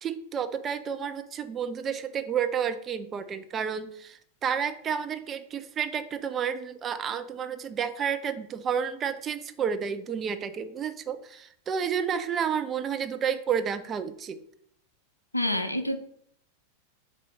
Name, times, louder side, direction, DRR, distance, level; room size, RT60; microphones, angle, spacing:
voice 1, 0.0-14.4, right 7 dB, 25° right, 11 dB, 0.4 m, -31 dB
voice 2, 15.3-16.0, left 1 dB, 85° left, 8 dB, 0.4 m, -27 dB
4.1 x 2.7 x 4.6 m, 0.67 s
figure-of-eight pair, 90°, 0 cm